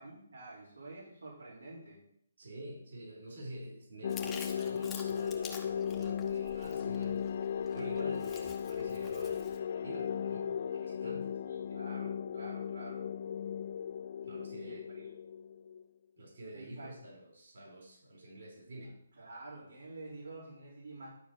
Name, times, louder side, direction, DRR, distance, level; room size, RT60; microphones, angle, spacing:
voice 1, 0.0-2.0 11.4-13.1 14.5-15.1 16.5-16.9 19.2-21.1, right 2 dB, 85° right, -5 dB, 3.8 m, -49 dB
voice 2, 2.4-7.2 7.5-11.3 14.2-14.8 16.2-19.0, right 1 dB, 65° right, -1 dB, 4.3 m, -48 dB
sound 1, 4.0-15.8, left 8 dB, 45° left, 0.3 m, -36 dB
Chewing mastication, 4.1-9.6, left 6 dB, 15° left, 1.1 m, -49 dB
11.5 x 4.2 x 6.3 m, 0.70 s
hypercardioid pair, 155°, 0 cm